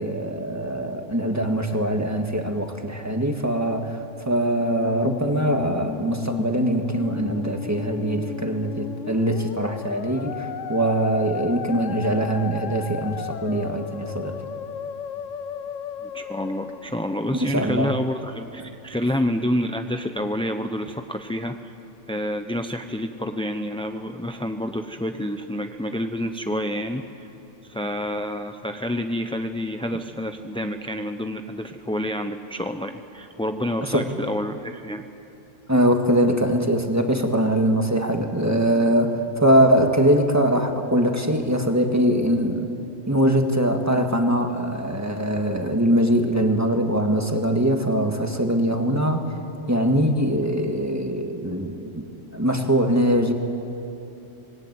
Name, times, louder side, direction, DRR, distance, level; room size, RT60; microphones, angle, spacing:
voice 1, 0.0-4.0 4.3-14.4 17.3-17.9 33.9-34.0 35.7-42.7 43.1-49.4 49.7-52.0 52.3-53.3, right 1 dB, 15° right, 4 dB, 1.8 m, -22 dB
Musical instrument, 4.3-17.7, left 9 dB, 85° left, 1.1 m, -35 dB
voice 2, 16.0-21.7 22.1-27.3 27.6-35.0, left 1 dB, 5° left, 6 dB, 0.4 m, -28 dB
25.0 x 20.0 x 9.4 m, 3.0 s
omnidirectional pair, 1.3 m